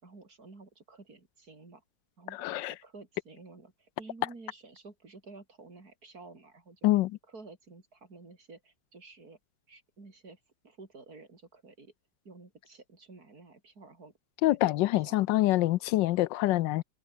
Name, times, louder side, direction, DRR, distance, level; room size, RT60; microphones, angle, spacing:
voice 1, 0.0-1.8 2.2-6.9 7.3-9.4 9.7-11.9 12.2-14.1 14.5-15.2, right 3 dB, 50° right, 4.7 m, -51 dB
voice 2, 2.4-2.7 6.8-7.1 14.4-16.8, left 16 dB, 80° left, 1.3 m, -25 dB
open air
omnidirectional pair, 2.0 m